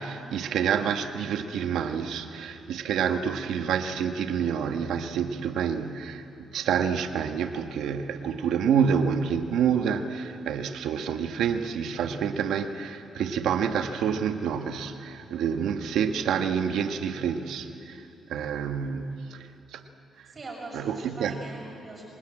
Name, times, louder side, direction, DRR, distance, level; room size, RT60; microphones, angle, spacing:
voice 1, 0.0-18.0 18.3-19.4 19.7-19.8 20.7-21.4, right 7 dB, 85° right, 7 dB, 1.3 m, -28 dB
voice 2, 20.3-22.0, right 2 dB, 35° right, -1 dB, 6.3 m, -42 dB
27.0 x 18.5 x 8.8 m, 2.7 s
cardioid pair, 100°, 0 cm